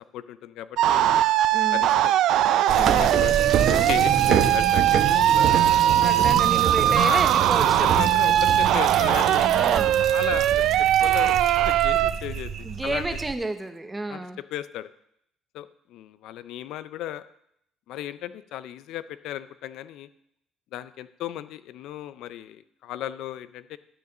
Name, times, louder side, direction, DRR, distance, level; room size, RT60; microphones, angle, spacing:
voice 1, 0.1-1.1 1.7-2.1 2.7-3.3 3.7-5.6 6.9-7.2 7.8-9.5 10.0-10.7 11.0-13.0 14.1-14.2 14.5-14.9 15.5-17.2 17.9-20.1 20.7-23.8, left 12 dB, 70° left, 15 dB, 0.4 m, -35 dB
sound 1, 0.8-12.1, right 12 dB, 65° right, 0.4 m, -20 dB
sound 2, 2.7-13.3, right 7 dB, 45° right, 0.8 m, -27 dB
voice 2, 2.8-3.2 6.0-8.0 9.5-10.0 12.6-14.4, right 2 dB, 10° right, 7 dB, 0.7 m, -31 dB
12.0 x 4.8 x 6.5 m, 0.76 s
cardioid pair, 160°, 0 cm